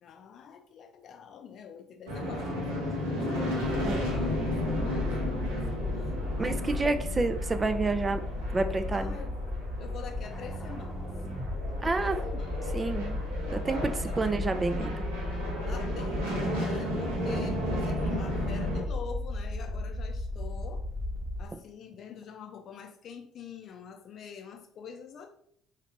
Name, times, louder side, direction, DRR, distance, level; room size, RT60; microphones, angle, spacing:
voice 1, 0.0-6.7 8.9-9.4 9.7-11.1 11.7-12.7 13.8-14.4 15.7-20.9 21.4-25.3, left 6 dB, 55° left, 4 dB, 0.5 m, -46 dB
sound 1, 2.1-18.8, equal, 85° right, 0.8 m, -34 dB
sound 2, 3.6-21.5, left 1 dB, 10° left, 0.9 m, -35 dB
voice 2, 6.4-8.2 8.5-9.2 11.8-12.2 12.7-13.2 13.5-14.9, right 3 dB, 30° right, 8 dB, 0.4 m, -29 dB
3.3 x 2.8 x 2.7 m, 0.66 s
hypercardioid pair, 55°, 0 cm